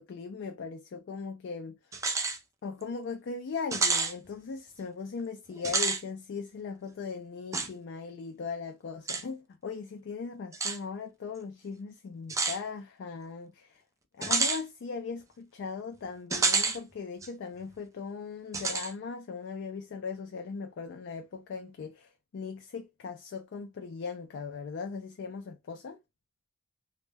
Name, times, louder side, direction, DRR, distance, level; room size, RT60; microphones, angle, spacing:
voice 1, 0.0-1.7 2.6-13.8 14.1-26.0, left 5 dB, 60° left, 0.4 m, -39 dB
sound 1, 1.9-2.4 2.8-2.9 3.7-4.1 5.6-6.0 7.5-7.7 9.1-9.2 10.5-10.8 12.3-12.6 14.2-14.6 16.3-16.8 17.2-17.3 18.5-18.9, right 4 dB, 15° right, 0.3 m, -28 dB
2.1 x 2.1 x 3.2 m
head